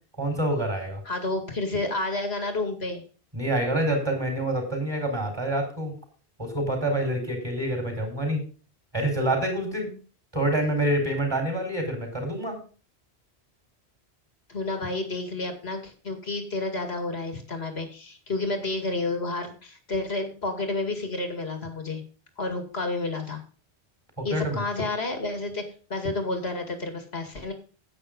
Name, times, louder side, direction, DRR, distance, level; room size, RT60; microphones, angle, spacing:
voice 1, 0.2-1.0 3.3-5.9 6.4-8.4 8.9-9.9 10.3-12.6 24.2-24.6, right 1 dB, 20° right, 3 dB, 4.6 m, -27 dB
voice 2, 1.1-3.0 14.5-22.0 22.4-23.4 24.2-25.6 25.9-27.5, left 2 dB, 70° left, 6 dB, 2.5 m, -30 dB
10.0 x 8.9 x 5.3 m, 0.37 s
omnidirectional pair, 1.1 m